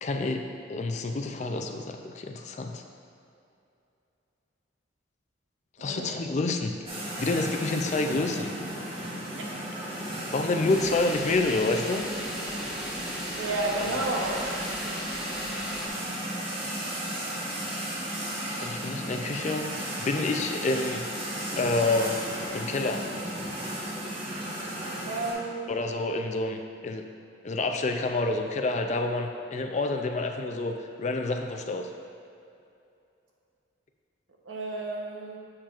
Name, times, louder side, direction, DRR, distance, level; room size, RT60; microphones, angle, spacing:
voice 1, 0.0-2.8 5.8-6.8 7.2-8.5 10.3-12.0 18.6-19.7 20.0-21.0 21.6-22.2 22.5-23.1 25.7-27.1 27.4-31.9, left 2 dB, 35° left, 5 dB, 0.4 m, -28 dB
sound 1, 6.9-25.3, right 1 dB, 25° right, 1.3 m, -34 dB
sound 2, 10.7-15.9, equal, 5° right, 1.4 m, -38 dB
voice 2, 13.4-14.4 25.1-25.7 34.4-35.4, right 2 dB, 80° right, -1 dB, 1.0 m, -31 dB
7.3 x 7.2 x 2.5 m, 2.7 s
head